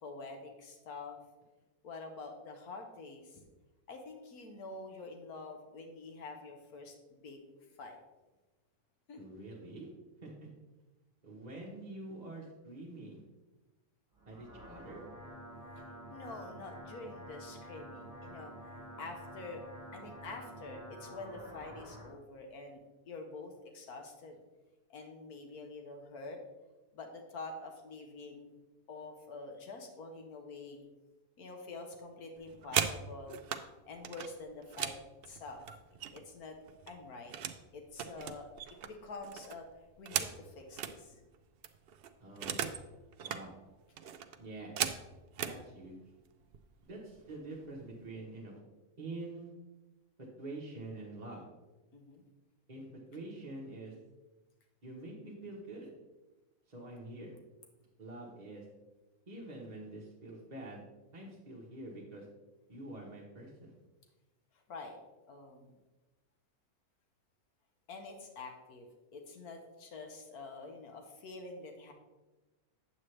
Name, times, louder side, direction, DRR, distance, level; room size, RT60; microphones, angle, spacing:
voice 1, 0.0-1.2 1.8-3.4 3.9-7.4 7.8-8.0 9.1-9.2 16.1-18.5 19.0-19.7 19.9-24.4 24.9-26.4 26.9-28.5 28.9-30.8 31.4-33.4 33.9-35.0 35.3-35.6 36.1-36.6 36.9-37.3 37.7-38.5 38.8-39.7 40.0-41.2 51.9-52.2 64.7-65.0 65.3-65.7 67.9-71.9, left 3 dB, 80° left, 3 dB, 1.5 m, -47 dB
voice 2, 9.2-9.9 10.2-10.5 11.2-13.2 14.3-15.0 42.2-42.7 43.2-43.5 44.4-44.7 45.4-46.0 46.8-48.6 49.0-49.5 50.2-51.4 52.7-53.9 54.8-55.9 56.7-57.3 58.0-58.6 59.3-60.8 61.1-62.2 62.7-63.7, right 2 dB, 30° right, -5 dB, 1.1 m, -46 dB
sound 1, 14.1-22.1, right 1 dB, 15° right, 2.6 m, -49 dB
sound 2, 32.4-33.6 34.0-36.4 36.7-37.6 37.9-41.0 41.3-41.4 41.6-42.8 43.1-43.4 44.0-45.6 46.4-46.6 46.9-47.3 47.6-48.1, right 8 dB, 85° right, 0.5 m, -38 dB
8.7 x 7.4 x 3.2 m, 1.1 s
omnidirectional pair, 1.6 m